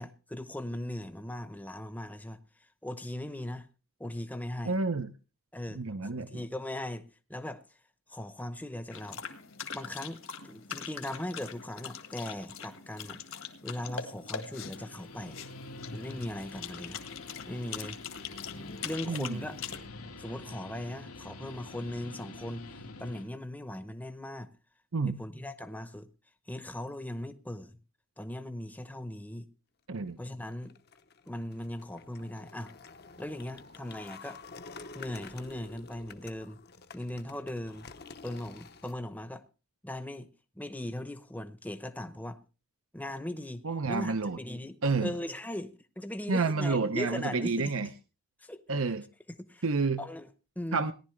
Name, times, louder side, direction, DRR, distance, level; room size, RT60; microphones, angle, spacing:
voice 1, 0.0-2.4 2.8-3.7 4.0-4.8 5.5-7.0 7.3-7.6 8.1-9.2 9.7-13.2 13.6-15.4 15.9-17.0 17.5-18.0 18.8-19.7 20.2-24.5 25.1-26.1 26.5-27.8 28.2-29.5 30.2-30.7 31.3-32.7 33.2-34.4 34.9-36.6 36.9-37.9 38.2-39.4 39.8-40.3 40.6-42.4 42.9-47.7 48.4-48.6 49.4-49.6 50.0-50.3 50.6-50.9, left 1 dB, 5° left, 0.8 m, -39 dB
voice 2, 4.6-5.1 5.7-6.4 19.1-19.4 24.9-25.2 29.9-30.2 43.6-44.4 44.8-45.2 46.3-47.9 48.7-49.0 49.6-50.0 50.7-50.9, right 4 dB, 70° right, 0.8 m, -29 dB
sound 1, 8.9-19.8, left 7 dB, 65° left, 1.7 m, -42 dB
Guitar, 14.6-23.3, left 2 dB, 90° left, 2.1 m, -46 dB
sound 2, 30.3-38.9, left 4 dB, 45° left, 0.9 m, -50 dB
18.0 x 11.0 x 3.2 m
head